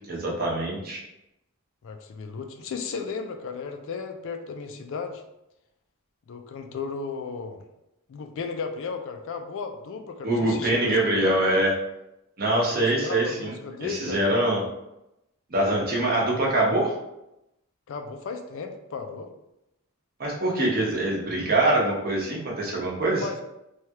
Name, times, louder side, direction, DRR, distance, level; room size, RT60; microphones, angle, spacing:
voice 1, 0.1-1.0 10.2-11.7 12.4-13.5 13.9-14.6 15.5-16.9 20.2-23.2, right 1 dB, 40° right, -3 dB, 0.8 m, -24 dB
voice 2, 1.8-5.2 6.3-7.7 8.1-11.6 12.7-14.2 17.9-19.3 23.2-23.4, left 5 dB, 60° left, 5 dB, 0.3 m, -34 dB
3.2 x 2.3 x 2.8 m, 0.88 s
head